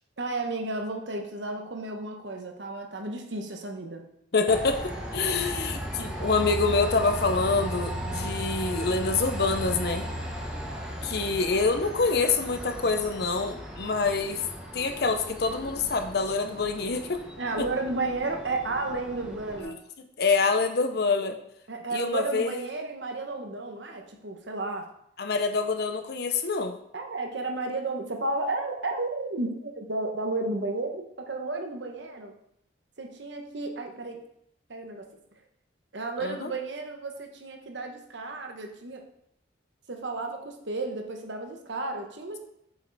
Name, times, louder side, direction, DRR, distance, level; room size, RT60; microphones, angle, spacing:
voice 1, 0.2-4.1 17.4-19.8 21.7-24.9 26.9-32.3 33.0-34.2 34.7-35.1 35.9-39.0 39.9-42.4, right 2 dB, 70° right, 3 dB, 1.1 m, -33 dB
voice 2, 4.3-10.1 11.0-14.4 14.7-17.2 19.6-19.7 20.2-21.4 21.9-22.5 25.2-26.8 36.2-36.5, left 4 dB, 55° left, 6 dB, 0.7 m, -26 dB
Train, 4.5-19.6, equal, 5° right, 1.0 m, -36 dB
7.7 x 5.4 x 4.1 m, 0.74 s
head